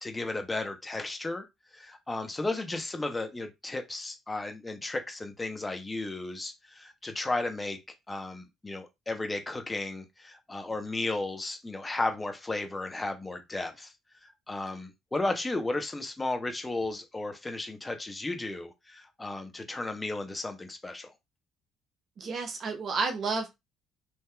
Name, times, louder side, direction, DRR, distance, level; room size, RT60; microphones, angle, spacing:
voice 1, 0.0-1.4 1.7-7.8 8.1-13.9 14.2-21.1, left 2 dB, 20° left, 0.8 m, -34 dB
voice 2, 22.2-23.5, right 4 dB, 55° right, 0.8 m, -31 dB
3.4 x 2.8 x 2.3 m
hypercardioid pair, 55°, 0 cm